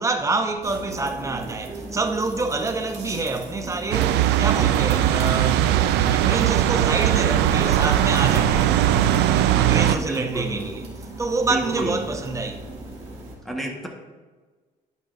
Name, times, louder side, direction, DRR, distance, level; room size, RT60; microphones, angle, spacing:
voice 1, 0.0-8.9 9.5-10.8 11.2-12.9 13.2-13.4, right 3 dB, 20° right, 0.9 m, -27 dB
sound 1, 0.6-13.3, right 2 dB, 40° right, 2.3 m, -38 dB
sound 2, 3.9-10.0, right 11 dB, 80° right, 0.5 m, -19 dB
voice 2, 9.8-10.8 11.4-12.0 13.4-13.9, right 1 dB, ahead, 1.5 m, -30 dB
11.0 x 5.5 x 2.7 m
cardioid pair, 110°, 17 cm